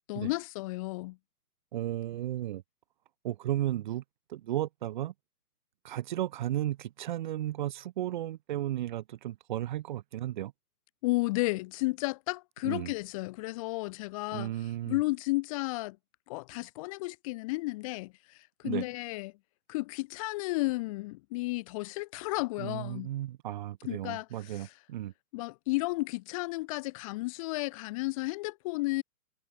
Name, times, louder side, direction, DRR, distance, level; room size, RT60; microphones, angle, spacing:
voice 1, 0.1-1.2 11.0-14.5 14.9-16.0 16.3-18.4 18.6-19.3 19.7-23.1 23.8-24.7 25.3-29.0, left 22 dB, 20° left, 3.2 m, -33 dB
voice 2, 1.7-2.6 3.2-4.0 4.3-5.1 5.8-10.5 12.6-12.9 14.3-15.0 18.6-18.8 22.6-25.1, right 13 dB, 30° right, 2.7 m, -34 dB
hypercardioid pair, 165°, 47 cm